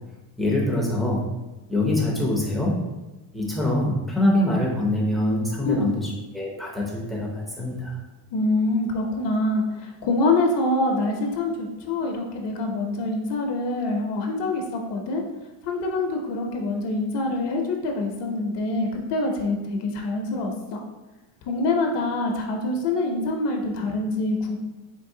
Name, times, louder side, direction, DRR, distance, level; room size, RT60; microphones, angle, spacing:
voice 1, 0.4-1.2 1.7-2.8 3.3-7.9, left 1 dB, ahead, -3 dB, 0.4 m, -24 dB
voice 2, 8.3-15.2 15.7-20.8 21.5-24.6, left 2 dB, 60° left, 2 dB, 0.7 m, -25 dB
4.6 x 3.0 x 2.6 m, 1.1 s
cardioid pair, 160°, 48 cm